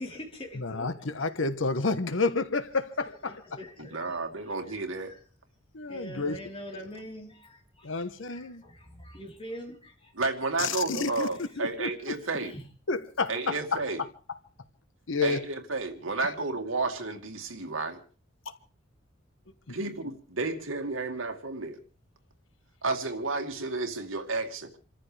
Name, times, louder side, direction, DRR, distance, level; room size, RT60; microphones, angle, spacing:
voice 1, 0.0-1.0 3.6-4.2 4.4-5.2 5.9-7.9 8.3-10.1 11.4-11.6 12.2-12.7, equal, 25° left, 4.0 m, -44 dB
voice 2, 0.5-3.4 5.7-6.4 7.8-8.6 10.6-11.3 11.6-11.9 12.9-13.8 15.1-15.5 19.7-19.8, left 4 dB, 70° left, 1.2 m, -30 dB
voice 3, 3.8-5.1 6.1-6.2 10.2-12.5 13.3-14.0 15.2-18.0 19.7-21.8 22.8-24.7, right 3 dB, 85° right, 2.3 m, -32 dB
28.0 x 14.0 x 3.4 m
head